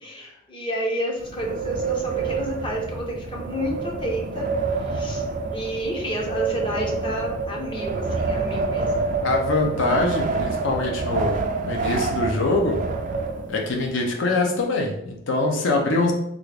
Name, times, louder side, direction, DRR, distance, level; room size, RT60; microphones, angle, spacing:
voice 1, 0.0-4.5 4.9-5.2 5.5-9.1, equal, 25° left, -1 dB, 0.6 m, -30 dB
Wind, 1.2-13.8, right 4 dB, 40° right, 0.3 m, -27 dB
voice 2, 9.2-12.8 13.5-16.1, left 2 dB, 65° left, 1 dB, 0.6 m, -23 dB
3.5 x 2.4 x 3.3 m, 0.75 s
head